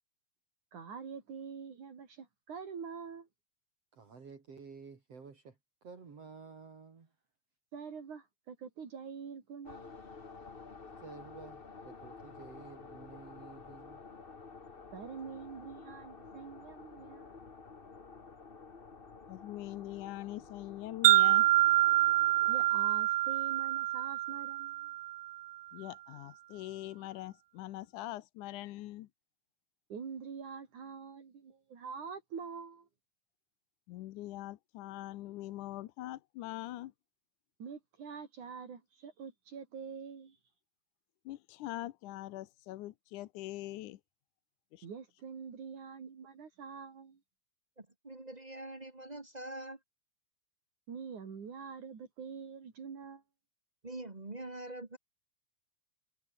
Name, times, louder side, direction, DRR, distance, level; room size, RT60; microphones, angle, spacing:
voice 1, 0.7-3.3 7.7-10.3 14.9-17.3 22.5-24.9 29.9-32.9 37.6-40.4 44.8-47.2 50.9-53.2, right 6 dB, 70° right, 5.0 m, -45 dB
voice 2, 3.9-7.1 11.0-14.0, right 5 dB, 50° right, 4.2 m, -52 dB
sound 1, 9.6-22.7, left 4 dB, 35° left, 0.9 m, -51 dB
voice 3, 19.3-21.5 25.7-29.1 33.9-36.9 41.3-44.0 44.7-44.9, left 15 dB, 80° left, 2.4 m, -43 dB
Wind chime, 21.0-25.3, right 16 dB, 90° right, 1.3 m, -26 dB
voice 4, 47.8-49.8 53.8-55.0, right 1 dB, 25° right, 1.0 m, -44 dB
omnidirectional pair, 3.5 m